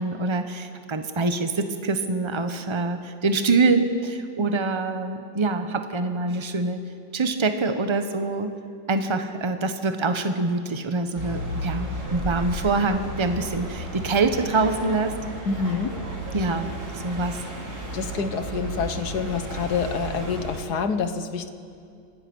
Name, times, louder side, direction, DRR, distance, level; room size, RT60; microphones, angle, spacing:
voice 1, 0.0-6.8 7.1-8.5 8.9-15.2 16.3-17.4, right 3 dB, 20° right, 7 dB, 0.9 m, -25 dB
sound 1, 11.2-20.7, right 1 dB, 55° right, 3.8 m, -33 dB
voice 2, 15.5-15.9 17.9-21.5, left 5 dB, 60° left, 9 dB, 1.6 m, -27 dB
27.0 x 17.5 x 6.2 m, 2.4 s
omnidirectional pair, 2.0 m